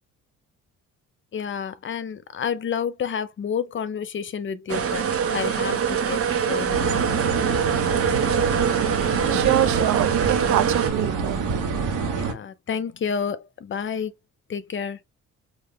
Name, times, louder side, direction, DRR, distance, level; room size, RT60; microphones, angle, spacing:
voice 1, 1.3-5.1 5.3-7.0 9.3-9.5 12.1-14.1 14.5-15.0, left 7 dB, 40° left, 0.6 m, -30 dB
sound 1, 4.7-10.9, right 7 dB, 50° right, 0.9 m, -24 dB
sound 2, 6.7-12.3, right 4 dB, 85° right, 1.1 m, -27 dB
voice 2, 9.3-11.5, right 13 dB, 70° right, 0.5 m, -24 dB
3.8 x 2.4 x 3.3 m
cardioid pair, 90°, 30 cm